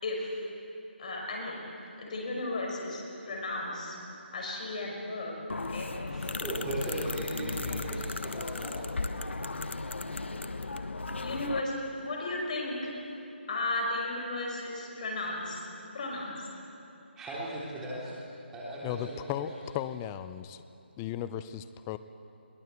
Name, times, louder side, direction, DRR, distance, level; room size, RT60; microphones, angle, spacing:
voice 1, 0.0-0.4 1.0-1.6 2.0-4.0 4.3-5.4 5.7-5.9 11.2-12.9 13.5-15.6 15.9-16.3, left 2 dB, 40° left, -1 dB, 5.5 m, -34 dB
sound 1, 5.5-11.6, left 3 dB, 85° left, 1.2 m, -36 dB
voice 2, 6.1-8.7 17.2-18.2 18.5-19.5, right 1 dB, 10° right, -7 dB, 3.3 m, -37 dB
voice 3, 18.8-20.6 21.0-22.0, left 11 dB, 15° left, 13 dB, 0.5 m, -36 dB
22.0 x 18.0 x 8.1 m, 2.8 s
figure-of-eight pair, 165°, 6 cm